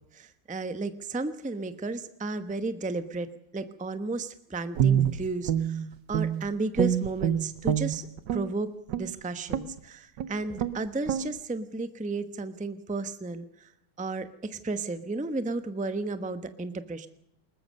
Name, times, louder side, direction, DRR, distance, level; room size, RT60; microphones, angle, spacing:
voice 1, 0.1-3.3 3.5-8.1 8.3-8.7 9.0-13.7 14.0-17.1, right 3 dB, 5° right, 10 dB, 0.5 m, -33 dB
Guitar, 4.8-6.5 6.8-8.5 8.9-9.1 9.5-9.8 10.2-10.3 10.6-10.8 11.1-11.3, right 9 dB, 65° right, 1.6 m, -26 dB
21.0 x 19.5 x 6.5 m, 0.76 s
omnidirectional pair, 2.3 m